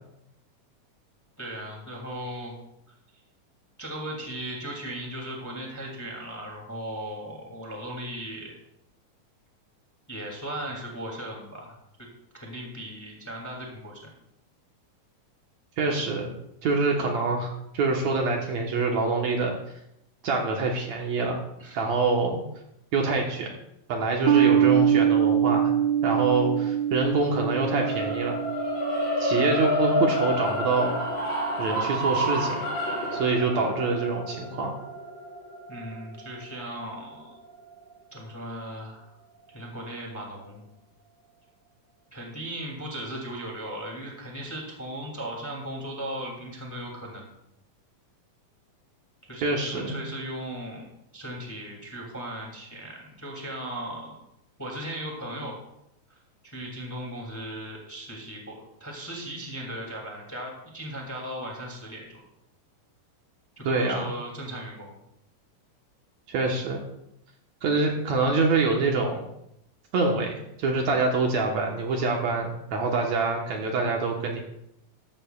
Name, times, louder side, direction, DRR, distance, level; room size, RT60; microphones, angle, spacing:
voice 1, 1.4-2.5 3.8-8.5 10.1-11.8 12.3-14.1 21.6-21.9 35.7-37.3 38.1-39.1 39.5-40.6 42.1-47.3 49.3-50.9 51.1-54.2 54.6-55.6 56.1-56.2 56.4-62.2 63.6-65.0, right 1 dB, 5° left, -1 dB, 1.9 m, -37 dB
voice 2, 15.8-16.3 16.6-19.5 20.2-21.4 21.7-22.4 22.9-23.5 23.9-25.7 26.0-28.4 29.2-30.9 31.6-32.6 33.1-34.7 49.4-50.0 63.7-64.1 66.3-66.8 67.6-69.2 69.9-74.4, right 3 dB, 65° right, 1 dB, 2.3 m, -25 dB
sound 1, 24.3-31.0, right 10 dB, 80° right, 1.6 m, -25 dB
sound 2, 27.7-37.9, equal, 75° left, 6.2 m, -29 dB
13.5 x 13.5 x 2.4 m, 0.80 s
omnidirectional pair, 3.8 m